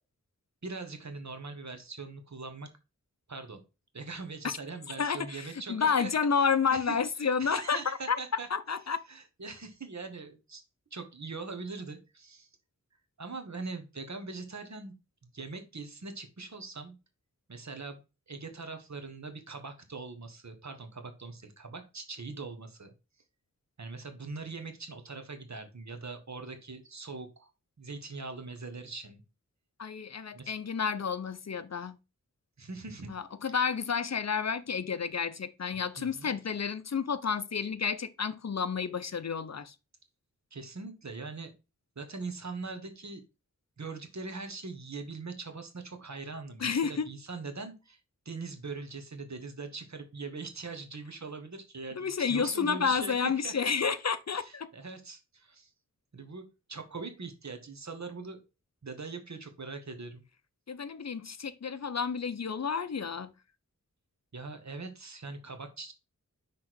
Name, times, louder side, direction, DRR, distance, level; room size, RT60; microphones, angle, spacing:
voice 1, 0.6-2.7 3.3-3.6 3.9-8.5 9.1-10.6 10.9-12.5 13.2-14.9 15.2-17.0 17.5-18.0 18.3-22.9 23.8-27.5 27.8-29.2 30.3-30.5 32.6-33.1 33.4-33.5 36.0-36.3 40.5-41.5 41.9-43.2 43.8-48.0 48.2-53.9 54.3-55.7 56.1-58.4 58.8-60.2 64.3-65.9, right 4 dB, 60° right, 1.3 m, -42 dB
voice 2, 5.0-7.8 8.1-8.2 8.5-9.0 29.8-32.0 33.1-39.7 46.6-47.1 51.9-54.7 60.7-63.3, left 6 dB, 55° left, 0.6 m, -30 dB
6.0 x 3.6 x 4.6 m
wide cardioid pair, 60°, 32 cm